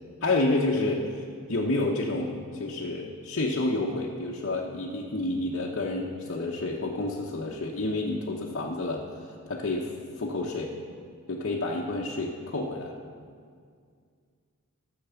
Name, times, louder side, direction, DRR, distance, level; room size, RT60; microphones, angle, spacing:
voice 1, 0.2-9.1 9.5-10.8 11.3-12.9, left 2 dB, 55° left, -3 dB, 0.9 m, -29 dB
14.0 x 6.8 x 6.9 m, 2.1 s
head